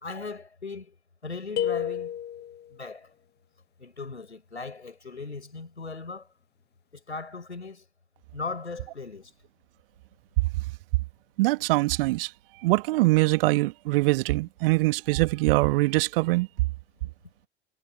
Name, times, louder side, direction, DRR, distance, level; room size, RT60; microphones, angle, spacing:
voice 1, 0.0-0.9 1.2-2.2 2.7-3.1 3.8-6.3 6.9-7.8 8.3-9.3, left 4 dB, 85° left, 5.0 m, -38 dB
sound 1, 1.6-2.7, left 10 dB, 30° left, 1.8 m, -30 dB
voice 2, 11.4-12.3 12.6-16.5, right 21 dB, 55° right, 1.7 m, -23 dB
figure-of-eight pair, 75°, 33 cm